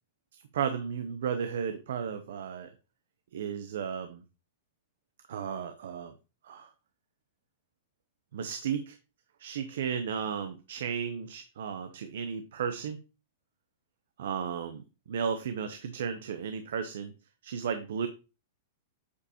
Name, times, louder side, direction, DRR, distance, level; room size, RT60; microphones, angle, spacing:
voice 1, 0.5-2.7 3.3-4.2 5.3-6.1 6.4-6.7 8.3-9.0 9.4-13.0 14.2-17.1 17.4-18.1, right 7 dB, 70° right, 9 dB, 0.7 m, -34 dB
8.3 x 5.0 x 2.8 m, 0.32 s
supercardioid pair, 175°, 0 cm